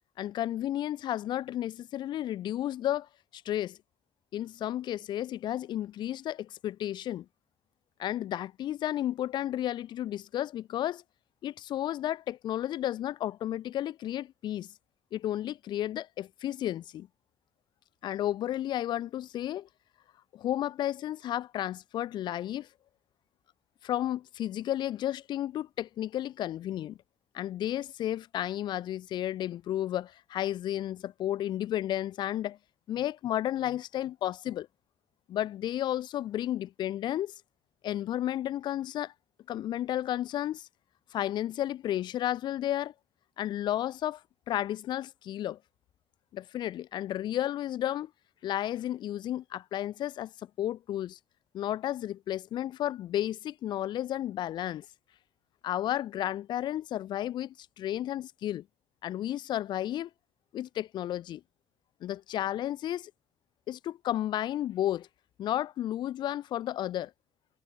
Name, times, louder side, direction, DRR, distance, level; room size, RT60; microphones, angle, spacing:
voice 1, 0.2-3.8 4.3-7.3 8.0-11.0 11.4-14.7 15.1-17.1 18.0-19.7 20.3-22.7 23.8-27.0 27.3-32.6 32.9-34.7 35.3-37.3 37.8-39.1 39.5-40.7 41.1-42.9 43.4-44.2 44.5-45.6 46.3-48.1 48.4-50.3 50.6-51.2 51.5-54.9 55.6-58.6 59.0-60.1 60.5-61.4 62.0-63.1 63.7-65.1 65.4-67.1, left 12 dB, 60° left, 0.4 m, -32 dB
cardioid pair, 130°, 9 cm